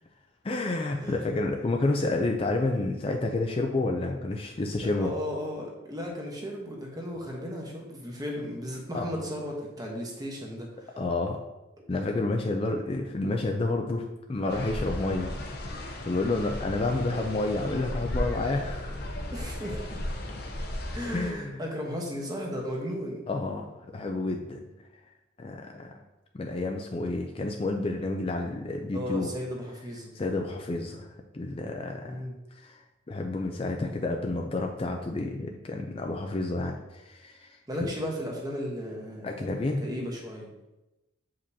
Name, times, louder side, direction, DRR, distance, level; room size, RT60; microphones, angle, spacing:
voice 1, 0.4-5.1 8.9-9.1 11.0-11.4 11.9-19.1 21.1-21.6 23.3-24.6 25.4-26.0 26.3-29.3 30.1-32.2 32.5-37.6 39.2-39.8, left 2 dB, 30° left, 3 dB, 0.4 m, -30 dB
voice 2, 0.9-1.3 5.0-11.0 11.8-11.9 19.3-20.0 20.9-23.2 28.9-30.1 32.0-32.4 37.7-39.5 39.8-40.5, equal, 20° right, -1 dB, 1.0 m, -35 dB
sound 1, 14.5-21.3, left 1 dB, 55° left, 0.8 m, -35 dB
7.1 x 5.1 x 2.7 m, 1.0 s
head